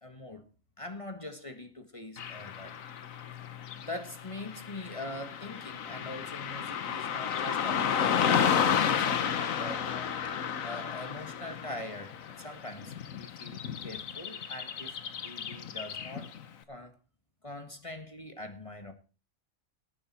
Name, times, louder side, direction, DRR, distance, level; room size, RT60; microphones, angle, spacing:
voice 1, 0.0-0.5 0.8-2.8 3.7-10.2 10.6-15.0 15.2-16.4 16.7-16.9 17.4-18.9, left 1 dB, 25° left, 1.6 m, -43 dB
Car passing by / Traffic noise roadway noise, 2.2-16.4, left 8 dB, 75° left, 1.4 m, -32 dB
18.5 x 9.5 x 4.3 m
omnidirectional pair, 1.4 m